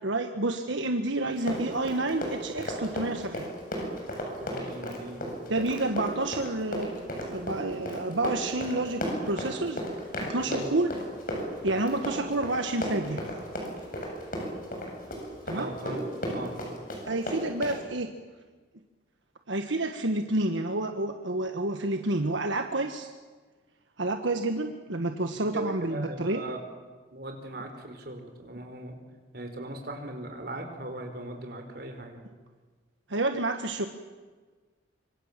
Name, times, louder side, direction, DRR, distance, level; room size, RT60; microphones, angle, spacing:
voice 1, 0.0-3.5 5.5-6.9 7.3-9.8 10.2-10.9 11.6-13.2 15.5-15.7 17.0-18.1 19.5-23.1 24.0-26.4 33.1-33.8, right 2 dB, 80° right, 6 dB, 1.4 m, -29 dB
Run, 1.3-17.8, equal, 45° left, 7.5 m, -34 dB
voice 2, 4.4-5.3 10.4-10.7 15.5-16.0 16.3-16.5 25.5-26.6 27.1-29.0 29.3-32.2, right 1 dB, 55° right, 4 dB, 4.7 m, -39 dB
25.5 x 25.5 x 7.5 m, 1.4 s
head